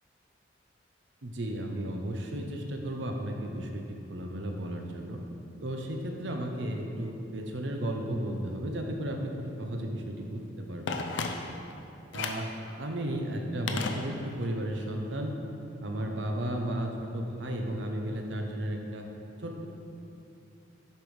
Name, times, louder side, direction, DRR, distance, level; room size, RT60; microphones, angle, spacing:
voice 1, 1.2-5.2 5.6-11.0 12.1-15.3 15.8-19.1 19.4-19.7, right 1 dB, 65° right, 3 dB, 0.8 m, -34 dB
Telephone, 10.9-11.7 12.1-12.5 13.7-14.5 14.8-14.9, left 4 dB, 65° left, 0.5 m, -34 dB
7.5 x 5.2 x 4.8 m, 2.8 s
head